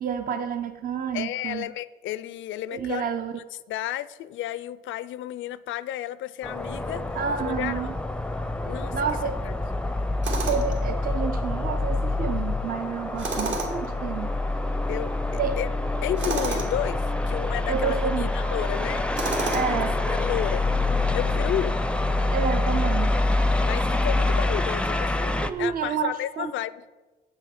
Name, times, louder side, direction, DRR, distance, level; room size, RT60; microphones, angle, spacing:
voice 1, 0.0-1.7 2.7-3.3 7.1-8.0 8.9-9.3 10.3-14.3 15.4-15.6 17.7-18.3 19.5-20.0 22.3-23.2 25.3-26.5, right 7 dB, 45° right, 8 dB, 0.6 m, -29 dB
voice 2, 1.1-3.1 3.7-7.9 8.7-9.0 9.4-9.5 14.9-15.1 15.6-15.7 16.0-19.1 19.4-19.7 20.0-20.6 21.1-21.8 23.6-26.7, left 13 dB, 75° left, 18 dB, 0.4 m, -32 dB
sound 1, 6.4-25.5, left 2 dB, 5° left, 0.5 m, -26 dB
Tools, 10.2-10.8 13.2-13.9 16.2-16.7 19.2-19.9, right 3 dB, 65° right, 2.0 m, -30 dB
7.9 x 6.9 x 5.8 m, 1.2 s
cardioid pair, 90°, 20 cm